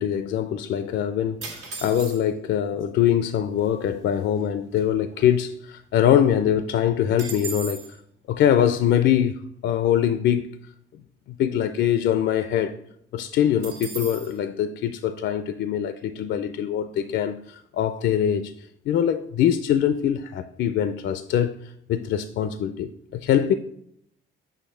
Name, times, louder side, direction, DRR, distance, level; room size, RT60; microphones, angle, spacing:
voice 1, 0.0-8.0 8.3-10.5 11.4-12.8 13.1-23.5, left 10 dB, 65° left, 0.4 m, -23 dB
sound 1, 1.4-2.5 3.3-3.4 3.6-3.9 4.4-5.8 6.2-6.3 6.5-7.9 13.6-14.3, right 5 dB, 85° right, 1.6 m, -37 dB
6.4 x 3.1 x 5.5 m
cardioid pair, 90°, 20 cm